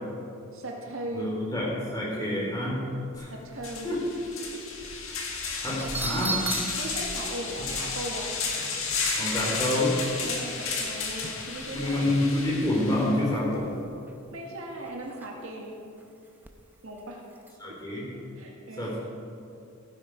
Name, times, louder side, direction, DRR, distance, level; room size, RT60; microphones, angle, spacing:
voice 1, 0.5-1.3 3.3-3.9 4.4-4.6 5.4-6.5 6.8-8.3 10.2-12.2 14.3-15.7 16.8-17.2 18.4-19.0, right 1 dB, 70° right, 0 dB, 1.8 m, -38 dB
voice 2, 1.1-2.9 3.2-3.3 3.8-4.0 5.6-6.4 7.6-7.7 9.1-10.0 11.7-13.7 17.6-18.1 18.8-19.0, left 1 dB, 20° left, -5 dB, 3.5 m, -27 dB
sound 1, 3.1-3.2 3.6-13.1, left 4 dB, 70° left, 1.9 m, -33 dB
sound 2, 5.8-7.0 7.3-7.4 7.9-8.0 8.5-9.5 9.8-10.0 10.2-10.9 11.2-11.7 12.0-12.4 12.8-13.6 14.0-14.2 14.8-15.5 16.0-16.5 17.4-17.5, right 3 dB, 10° right, 0.8 m, -36 dB
15.5 x 9.5 x 4.6 m, 2.5 s
head